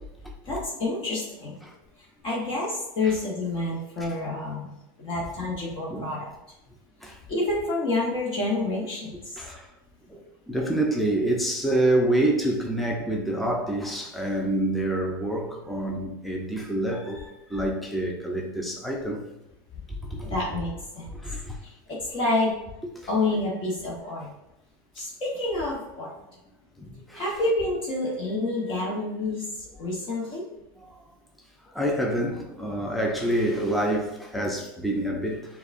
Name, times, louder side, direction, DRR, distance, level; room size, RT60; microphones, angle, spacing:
voice 1, 0.4-1.6 2.0-6.3 7.0-9.4 20.2-21.2 21.9-22.5 23.1-24.3 24.9-26.1 27.1-30.4, left 2 dB, 45° left, 1.1 m, -28 dB
voice 2, 9.4-9.7 10.1-19.2 19.9-20.4 21.1-21.6 23.0-23.4 26.8-27.2 30.9-31.0 31.7-35.6, right 1 dB, ahead, 0.6 m, -27 dB
6.6 x 2.3 x 2.6 m
hypercardioid pair, 105°, 12 cm